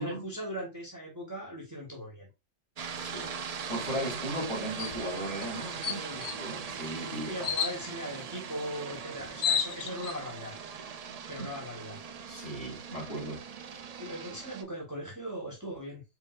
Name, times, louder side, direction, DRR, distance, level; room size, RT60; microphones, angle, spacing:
voice 1, 0.0-2.3 5.8-6.2 7.3-10.5 11.3-12.0 14.0-16.0, equal, 15° right, 1.4 m, -39 dB
sound 1, 2.8-14.6, right 6 dB, 55° right, 0.4 m, -40 dB
voice 2, 3.0-3.3 3.7-7.4 11.4-11.5 12.3-13.4, right 1 dB, 30° left, 2.7 m, -36 dB
sound 2, 4.8-5.0 5.4-5.5 5.8-6.4 7.4-7.8 8.9-9.0 9.2-10.2, left 7 dB, 60° left, 0.9 m, -30 dB
4.7 x 3.5 x 2.4 m
omnidirectional pair, 1.2 m